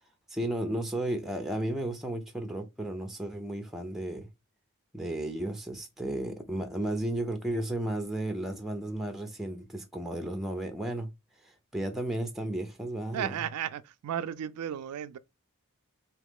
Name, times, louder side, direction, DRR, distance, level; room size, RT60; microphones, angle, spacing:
voice 1, 0.3-4.3 4.9-11.1 11.4-13.3, right 1 dB, ahead, 0.6 m, -33 dB
voice 2, 13.1-15.2, right 9 dB, 85° right, 0.4 m, -34 dB
3.8 x 2.9 x 3.6 m
head